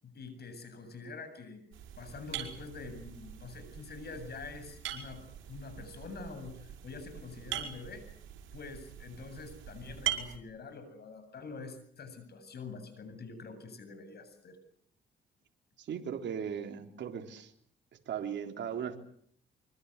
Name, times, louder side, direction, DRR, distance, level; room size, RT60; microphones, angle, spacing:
voice 1, 0.0-1.6 2.0-5.2 5.5-8.0 8.5-14.6, left 4 dB, 55° left, 10 dB, 7.9 m, -46 dB
sound 1, 1.7-10.4, right 11 dB, 80° right, 5.8 m, -42 dB
voice 2, 15.8-17.5 18.0-19.0, right 8 dB, 65° right, 4 dB, 3.5 m, -37 dB
25.0 x 24.5 x 8.2 m, 0.63 s
cardioid pair, 90°, 20 cm